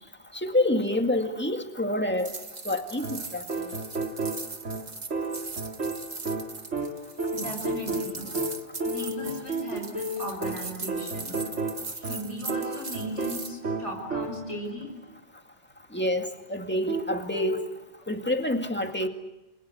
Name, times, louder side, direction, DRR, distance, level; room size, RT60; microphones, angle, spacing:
voice 1, 0.4-2.3 2.7-3.7 15.9-17.7 18.1-19.1, left 1 dB, 10° left, 5 dB, 2.0 m, -27 dB
sound 1, 2.2-13.5, right 3 dB, 35° right, 1.5 m, -39 dB
sound 2, 3.0-14.6 16.9-17.7, right 2 dB, 85° right, 2.6 m, -33 dB
voice 2, 7.3-8.3 8.8-11.4 11.9-14.9, equal, 75° left, 1 dB, 6.3 m, -37 dB
30.0 x 23.0 x 7.9 m, 1.0 s
omnidirectional pair, 1.2 m